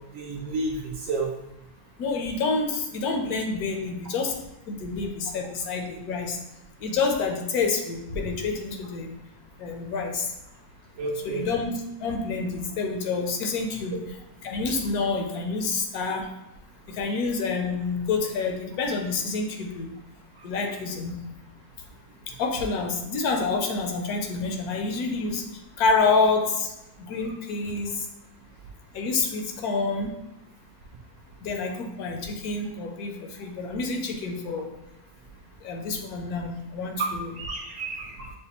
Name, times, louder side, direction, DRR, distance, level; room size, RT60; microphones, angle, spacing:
voice 1, 0.1-1.3 11.0-11.4 37.0-38.3, right 3 dB, 70° right, 0 dB, 0.8 m, -31 dB
voice 2, 2.0-4.3 4.7-6.4 6.8-9.1 9.6-10.3 11.2-11.7 12.0-14.0 14.4-16.3 16.9-20.0 20.4-21.1 22.4-25.4 25.8-26.7 27.0-27.9 28.9-30.1 31.4-34.7 35.6-37.3, left 4 dB, 75° left, 3 dB, 1.1 m, -28 dB
6.5 x 2.2 x 2.9 m, 0.90 s
omnidirectional pair, 1.7 m